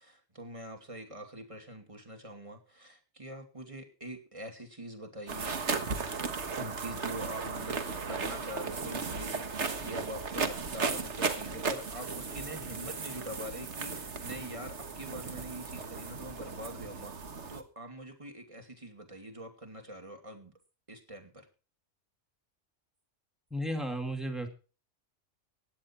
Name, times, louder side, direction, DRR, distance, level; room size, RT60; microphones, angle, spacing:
voice 1, 0.0-5.6 6.5-20.5 20.9-21.5, right 1 dB, 25° right, 4 dB, 2.7 m, -44 dB
sound 1, 5.3-17.6, right 4 dB, 65° right, 1.8 m, -36 dB
voice 2, 23.5-24.5, equal, ahead, 5 dB, 2.5 m, -33 dB
16.0 x 10.5 x 4.6 m, 0.35 s
omnidirectional pair, 1.3 m